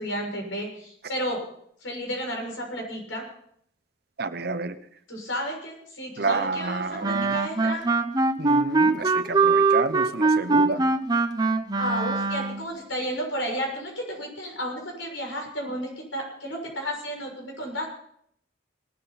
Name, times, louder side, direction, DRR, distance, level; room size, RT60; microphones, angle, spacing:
voice 1, 0.0-1.4 1.8-3.2 5.1-7.9 11.7-17.9, equal, 90° left, 1 dB, 6.6 m, -32 dB
voice 2, 4.2-4.8 6.2-7.4 8.4-10.8, right 3 dB, 55° right, 11 dB, 1.0 m, -29 dB
Wind instrument woodwind instrument, 7.0-12.7, right 3 dB, 20° right, 0.9 m, -22 dB
20.5 x 12.5 x 4.2 m, 0.67 s
head